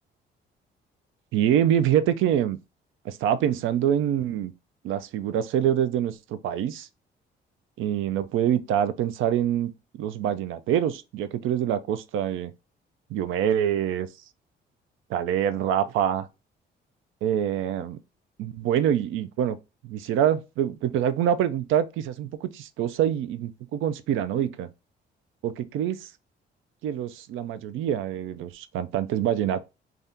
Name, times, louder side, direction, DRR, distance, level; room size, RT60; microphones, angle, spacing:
voice 1, 1.3-2.6 3.0-4.5 4.8-6.9 7.8-9.7 10.0-12.5 13.1-14.1 15.1-16.3 17.2-18.0 18.4-19.6 19.8-24.7 25.4-26.1 26.8-29.6, right 10 dB, 85° right, 0.4 m, -25 dB
2.7 x 2.3 x 3.5 m
cardioid pair, 90°, 20 cm